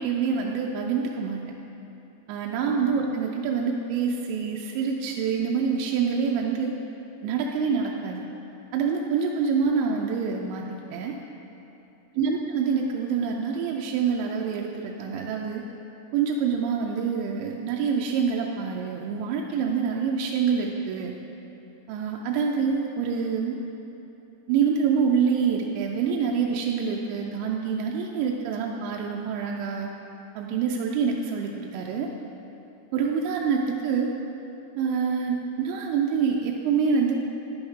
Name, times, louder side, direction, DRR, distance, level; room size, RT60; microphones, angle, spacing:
voice 1, 0.0-1.4 2.3-6.7 7.2-8.2 8.7-11.2 12.2-15.6 16.1-21.2 21.9-23.6 24.5-29.9 30.4-32.1 32.9-34.1 34.8-37.2, right 6 dB, 90° right, 0 dB, 2.9 m, -26 dB
11.0 x 10.5 x 3.6 m, 2.9 s
omnidirectional pair, 5.0 m